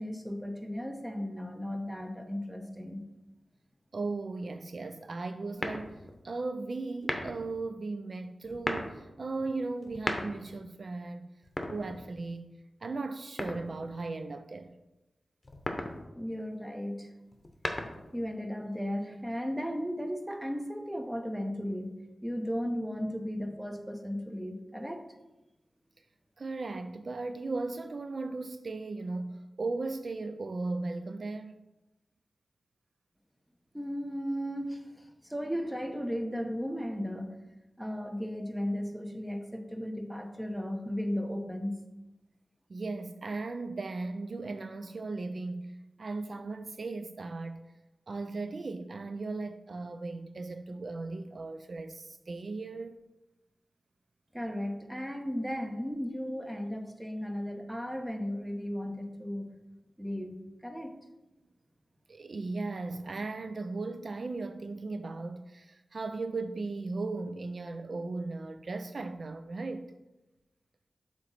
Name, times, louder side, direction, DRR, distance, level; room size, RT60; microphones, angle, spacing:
voice 1, 0.0-3.0 16.1-17.1 18.1-21.9 22.2-25.1 33.7-37.3 37.8-41.7 54.3-59.5 60.0-60.9, equal, 10° right, 0.9 m, -35 dB
voice 2, 3.9-11.3 11.7-12.5 12.8-14.7 26.4-31.6 42.7-47.6 48.1-53.0 62.1-69.9, right 3 dB, 65° right, 0.3 m, -37 dB
sound 1, 5.6-6.2 7.0-7.5 8.4-9.0 9.8-10.6 11.4-12.3 13.4-14.0 15.4-16.0 17.3-18.2, left 2 dB, 40° left, 0.8 m, -36 dB
7.5 x 3.0 x 4.2 m
cardioid pair, 40°, 0 cm